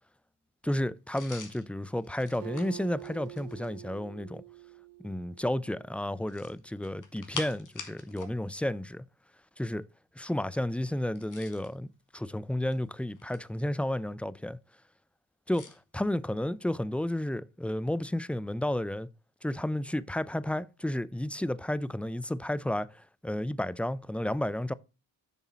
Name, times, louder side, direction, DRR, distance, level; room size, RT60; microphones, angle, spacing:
voice 1, 0.6-4.4 5.0-9.0 9.6-9.8 10.2-11.9 12.1-14.6 15.5-19.1 19.4-24.7, left 1 dB, 5° left, 0.4 m, -32 dB
sound 1, 1.1-3.8 6.2-8.4 8.6-8.8 11.0-11.7 12.5-13.6 15.5-15.8, left 4 dB, 40° left, 2.2 m, -45 dB
Acoustic guitar, 2.4-6.0, right 16 dB, 45° right, 0.8 m, -46 dB
7.2 x 5.9 x 4.1 m
supercardioid pair, 55°, 47 cm